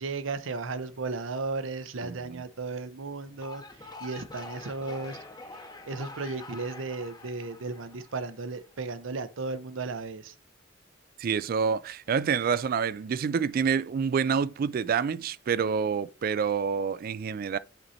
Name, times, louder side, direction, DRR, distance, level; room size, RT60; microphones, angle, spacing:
voice 1, 0.0-5.2 5.5-5.6 5.9-10.3, right 3 dB, 85° right, 0.7 m, -35 dB
voice 2, 2.0-2.4 11.2-17.6, right 6 dB, 50° right, 0.3 m, -27 dB
sound 1, 3.3-8.6, left 2 dB, 20° left, 0.7 m, -45 dB
7.8 x 4.2 x 4.1 m
head